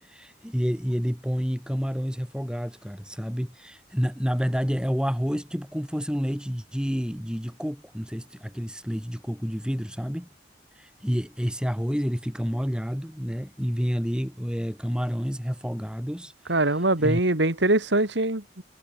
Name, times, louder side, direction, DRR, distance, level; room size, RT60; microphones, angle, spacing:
voice 1, 0.0-10.3 10.8-16.5 17.0-17.2, equal, 5° right, 5.7 m, -29 dB
voice 2, 16.5-18.6, right 2 dB, 80° right, 2.8 m, -23 dB
head